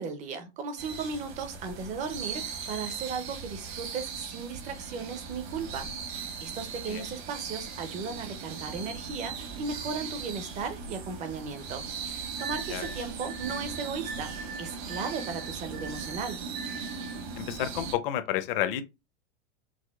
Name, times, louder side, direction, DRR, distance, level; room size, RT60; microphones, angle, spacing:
voice 1, 0.0-5.9 6.2-16.4, right 5 dB, 20° right, 0.5 m, -36 dB
sound 1, 0.8-17.9, right 5 dB, 65° right, 1.2 m, -39 dB
sound 2, 12.4-17.3, right 3 dB, 50° right, 0.8 m, -43 dB
voice 2, 17.4-18.8, left 12 dB, 55° left, 0.6 m, -30 dB
4.8 x 2.0 x 2.3 m
supercardioid pair, 150°, 35 cm